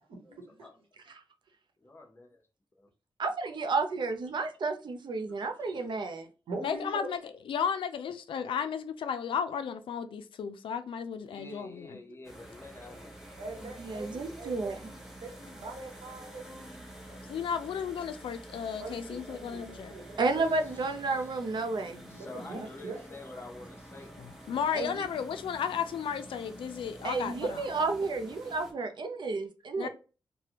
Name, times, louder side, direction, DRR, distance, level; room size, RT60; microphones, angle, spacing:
voice 1, 0.1-0.7 6.5-7.0 13.4-16.9 18.8-20.2 22.2-23.0, right 2 dB, 90° right, 1.1 m, -43 dB
voice 2, 1.8-2.4 2.7-2.9 5.4-5.9 11.3-13.4 20.3-20.5 21.1-21.4 22.1-24.1 24.7-24.9 29.8-29.9, left 2 dB, 30° left, 0.8 m, -48 dB
voice 3, 3.2-6.3 13.8-14.8 20.2-22.2 24.7-25.0 27.0-29.9, right 3 dB, 65° right, 0.6 m, -31 dB
voice 4, 6.6-12.0 17.3-19.9 24.5-27.6 29.8-29.9, left 7 dB, 85° left, 0.4 m, -34 dB
sound 1, 12.2-28.7, right 1 dB, 5° right, 0.8 m, -48 dB
3.3 x 2.2 x 2.8 m
cardioid pair, 85°, 9 cm